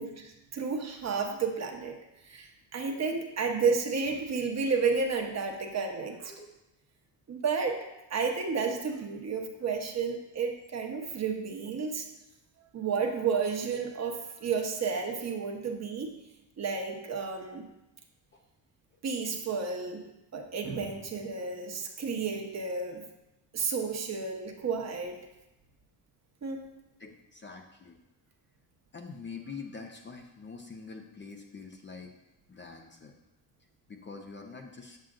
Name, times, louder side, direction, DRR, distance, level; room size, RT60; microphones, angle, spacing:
voice 1, 0.0-2.0 2.3-6.4 7.3-7.8 8.1-12.1 12.7-16.1 16.6-17.6 19.0-23.0 23.5-25.3 26.4-26.6, right 5 dB, 35° right, 3 dB, 1.0 m, -31 dB
voice 2, 27.0-28.0 28.9-32.1 32.5-33.2 33.9-35.0, left 4 dB, 25° left, 3 dB, 0.7 m, -45 dB
7.5 x 7.3 x 2.5 m, 0.93 s
cardioid pair, 95°, 44 cm